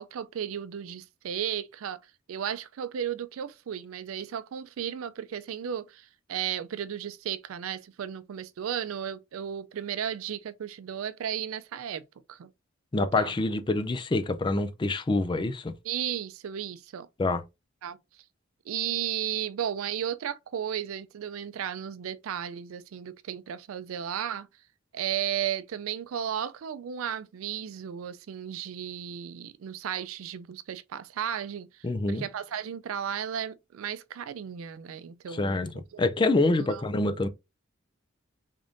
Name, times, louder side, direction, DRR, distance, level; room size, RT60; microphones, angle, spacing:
voice 1, 0.0-2.0 2.3-12.0 12.3-12.5 13.2-13.3 15.8-17.1 17.8-18.0 18.7-24.5 24.9-31.7 32.1-35.5 36.7-36.8, right 9 dB, 90° right, 0.4 m, -34 dB
voice 2, 12.9-15.7 17.2-17.4 31.8-32.2 35.3-35.7 36.0-37.3, left 2 dB, 25° left, 0.4 m, -26 dB
3.6 x 3.5 x 2.5 m
head